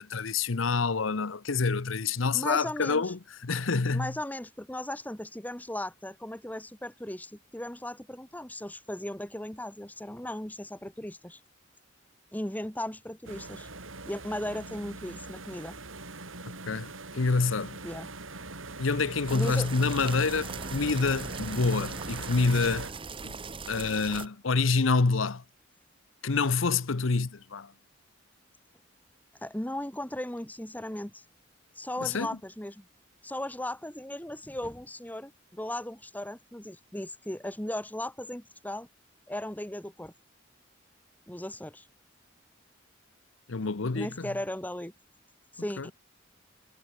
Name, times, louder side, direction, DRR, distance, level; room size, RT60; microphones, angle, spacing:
voice 1, 0.0-4.2 16.7-17.8 18.8-22.9 23.2-23.4 23.7-25.4 26.2-27.7 32.0-32.4 43.5-44.3 45.8-45.9, left 4 dB, 75° left, 0.9 m, -27 dB
voice 2, 2.3-3.1 3.9-11.4 12.3-13.7 14.1-15.7 17.8-18.1 19.3-19.7 29.4-31.2 31.8-32.8 33.2-38.9 39.3-40.1 41.3-41.9 43.9-44.9 45.5-45.9, left 1 dB, 10° left, 1.4 m, -37 dB
sound 1, 13.2-22.9, right 3 dB, 80° right, 6.6 m, -41 dB
sound 2, 19.3-24.3, right 4 dB, 25° right, 1.1 m, -40 dB
head